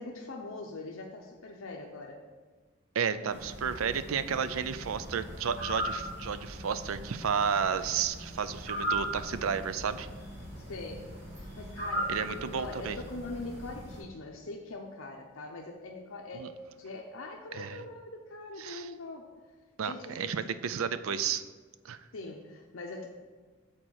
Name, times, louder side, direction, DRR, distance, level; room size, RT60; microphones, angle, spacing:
voice 1, 0.0-2.2 4.2-4.3 10.6-16.5 16.8-19.3 19.8-20.6 22.1-23.1, left 2 dB, 85° left, 1 dB, 0.7 m, -42 dB
voice 2, 2.9-10.1 12.1-13.0 16.4-16.5 17.5-17.8 18.6-18.9 19.8-21.4 21.8-22.0, right 7 dB, 85° right, 13 dB, 0.5 m, -32 dB
sound 1, 3.3-14.0, right 1 dB, 60° right, 2.2 m, -39 dB
7.5 x 4.3 x 6.3 m, 1.4 s
head